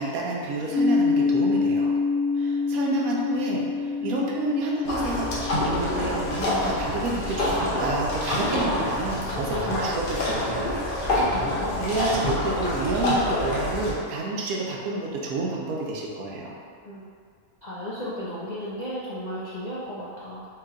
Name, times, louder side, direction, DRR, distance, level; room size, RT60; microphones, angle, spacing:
voice 1, 0.0-1.9 2.4-10.7 11.8-16.5, right 2 dB, 85° right, -2 dB, 1.1 m, -29 dB
sound 1, 0.7-8.5, left 4 dB, 20° left, 1.6 m, -27 dB
sound 2, 4.8-13.9, left 1 dB, 45° left, 0.8 m, -26 dB
voice 2, 11.2-11.8 16.8-17.1 17.6-20.5, equal, 70° left, -7 dB, 0.4 m, -34 dB
3.2 x 2.9 x 3.6 m, 2.2 s
omnidirectional pair, 1.5 m